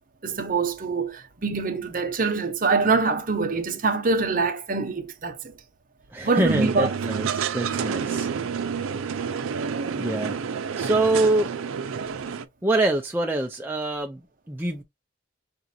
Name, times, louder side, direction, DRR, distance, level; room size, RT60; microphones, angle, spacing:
voice 1, 0.2-5.5 6.2-6.9, right 4 dB, 40° right, 0.7 m, -24 dB
voice 2, 6.1-8.3 9.1-9.2 9.9-10.4 10.8-11.5 12.6-14.2 14.5-14.8, right 2 dB, 10° right, 0.3 m, -25 dB
sound 1, 6.5-12.5, right 6 dB, 90° right, 0.5 m, -29 dB
5.7 x 2.5 x 2.6 m
head